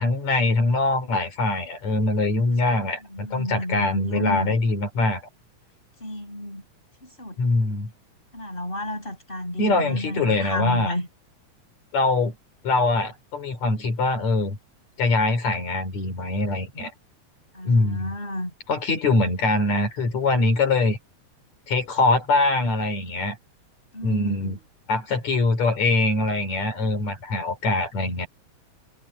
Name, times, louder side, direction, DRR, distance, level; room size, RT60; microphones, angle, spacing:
voice 1, 0.0-5.2 7.4-7.9 9.6-10.9 11.9-12.3 12.6-14.6 15.0-16.9 17.6-18.1 18.7-21.0 21.7-23.4 24.0-24.6 24.9-28.3, left 2 dB, 70° left, 4.8 m, -23 dB
voice 2, 3.1-4.6 6.0-6.6 7.0-7.4 8.3-11.1 17.5-18.5 23.9-24.5, left 1 dB, 15° left, 8.0 m, -31 dB
omnidirectional pair, 3.3 m